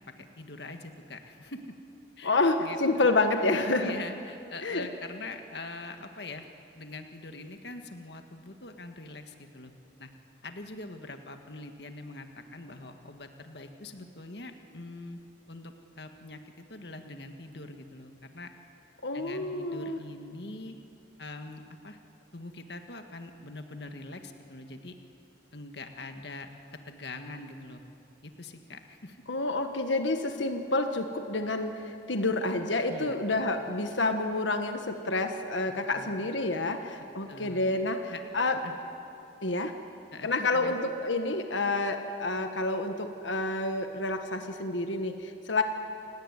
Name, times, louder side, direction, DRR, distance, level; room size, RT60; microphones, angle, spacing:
voice 1, 0.1-1.7 2.2-3.1 3.8-6.5 6.7-9.7 10.0-10.1 10.4-15.2 15.5-18.5 19.1-20.8 21.2-22.0 22.3-25.0 25.5-27.9 28.2-29.2 32.9-33.2 35.9-36.3 37.3-37.6 38.1-38.2 38.5-38.7 40.1-40.8, left 2 dB, 65° left, 6 dB, 1.8 m, -43 dB
voice 2, 2.2-3.9 4.6-4.9 19.0-20.0 29.3-38.6 39.4-39.7 40.2-45.6, left 2 dB, 90° left, 6 dB, 1.6 m, -29 dB
29.0 x 18.5 x 9.9 m, 2.7 s
head